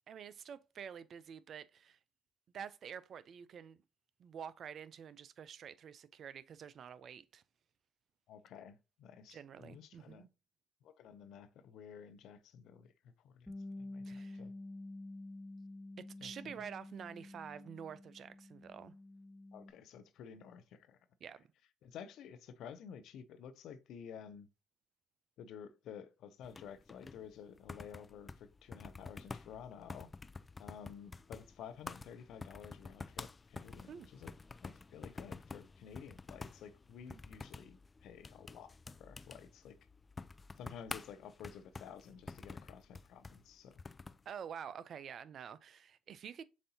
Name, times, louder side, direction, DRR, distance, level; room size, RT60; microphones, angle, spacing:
voice 1, 0.1-2.0 2.5-3.8 4.2-7.4 9.3-10.3 14.0-14.4 16.0-18.9 21.2-21.4 33.9-34.1 44.3-46.4, right 8 dB, 55° right, 0.4 m, -48 dB
voice 2, 8.3-10.2 10.8-13.5 13.8-14.5 16.2-16.5 19.5-21.0 21.8-24.5 25.4-30.1 30.6-34.3 34.6-39.8 40.6-43.8, left 7 dB, 70° left, 0.6 m, -52 dB
Bass guitar, 13.5-19.7, left 2 dB, 10° left, 1.0 m, -49 dB
sound 1, 26.4-44.3, left 4 dB, 30° left, 0.5 m, -50 dB
7.2 x 2.7 x 2.7 m
hypercardioid pair, 55°, 0 cm